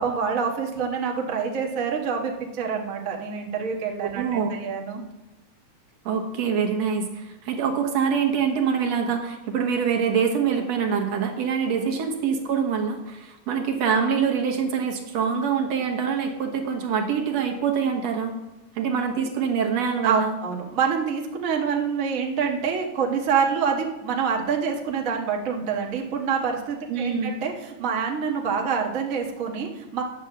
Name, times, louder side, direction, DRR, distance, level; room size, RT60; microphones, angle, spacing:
voice 1, 0.0-5.0 11.8-11.9 20.0-30.0, right 6 dB, 50° right, 1 dB, 1.0 m, -26 dB
voice 2, 4.1-4.6 6.1-18.3 18.8-20.4 26.9-27.3, right 6 dB, 65° right, 3 dB, 2.2 m, -25 dB
9.7 x 7.7 x 6.9 m, 1.0 s
omnidirectional pair, 3.5 m